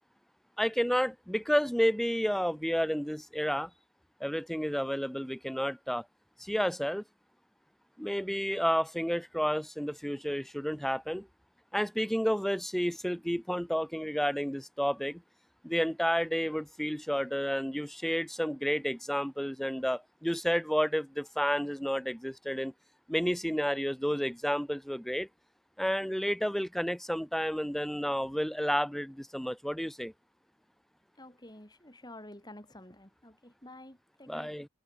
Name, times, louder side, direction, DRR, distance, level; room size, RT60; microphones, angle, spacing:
voice 1, 0.6-3.7 4.2-6.0 6.4-7.0 8.0-11.3 11.7-15.2 15.6-22.7 23.1-25.3 25.8-30.1 34.3-34.7, equal, ahead, 0.6 m, -31 dB
voice 2, 31.2-34.5, left 1 dB, 20° left, 3.1 m, -50 dB
head